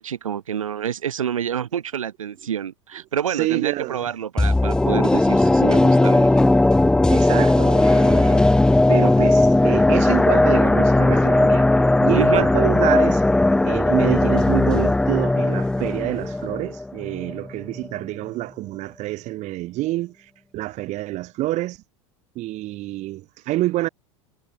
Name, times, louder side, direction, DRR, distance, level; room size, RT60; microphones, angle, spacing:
voice 1, 0.0-6.3 12.2-12.5, right 9 dB, 85° right, 0.8 m, -28 dB
voice 2, 3.4-4.1 7.1-8.5 8.9-13.2 13.6-20.1 20.5-21.8 22.3-23.9, right 17 dB, 45° right, 0.9 m, -27 dB
sound 1, 4.4-17.5 17.8-17.9, left 2 dB, 5° left, 0.4 m, -17 dB
Thump thud, 10.7-11.1 12.3-12.7, right 3 dB, 15° right, 3.7 m, -40 dB
hypercardioid pair, 85°, 17 cm